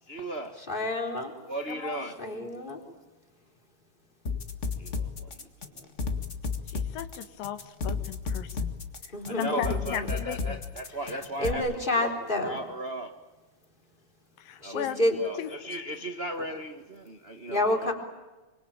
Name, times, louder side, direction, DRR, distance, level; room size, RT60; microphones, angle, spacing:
voice 1, 0.0-0.6 1.5-2.2 4.8-5.9 9.3-13.2 14.6-17.9, right 1 dB, 55° right, 0.6 m, -37 dB
voice 2, 0.7-1.3 2.2-2.8 9.1-10.1 11.4-12.6 14.6-15.2 17.5-17.9, left 1 dB, 15° left, 3.9 m, -29 dB
voice 3, 1.7-2.4 6.7-8.7 9.0-10.6 14.4-15.5, left 10 dB, 85° left, 3.1 m, -37 dB
sound 1, 4.3-11.5, left 4 dB, 30° left, 1.5 m, -32 dB
26.0 x 25.0 x 8.8 m
omnidirectional pair, 3.9 m